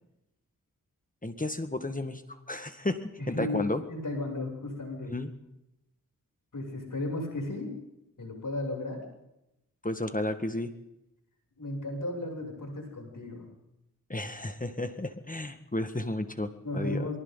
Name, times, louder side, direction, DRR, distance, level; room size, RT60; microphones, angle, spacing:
voice 1, 1.2-2.2 2.5-3.8 5.1-5.3 9.8-10.7 14.1-17.1, left 2 dB, 25° left, 9 dB, 1.8 m, -32 dB
voice 2, 3.2-3.6 3.9-5.1 6.5-7.7 8.2-9.0 11.6-13.5 16.6-17.2, left 2 dB, 65° left, 0 dB, 7.8 m, -34 dB
28.5 x 24.0 x 4.1 m, 0.88 s
cardioid pair, 45°, 34 cm